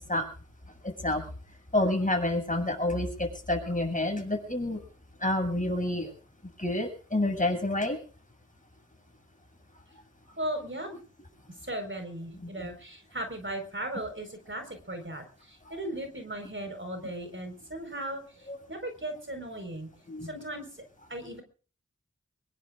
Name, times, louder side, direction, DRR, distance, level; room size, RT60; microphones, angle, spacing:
voice 1, 0.8-1.2 1.7-4.8 5.2-6.1 6.6-8.0 12.4-12.7 18.5-18.6 20.1-20.3, left 1 dB, 25° left, 3 dB, 7.4 m, -28 dB
voice 2, 10.4-11.0 11.6-19.9 20.2-20.8 21.1-21.4, right 1 dB, 40° right, 5 dB, 4.8 m, -37 dB
24.5 x 21.5 x 2.5 m, 0.41 s
wide cardioid pair, 50°, 30 cm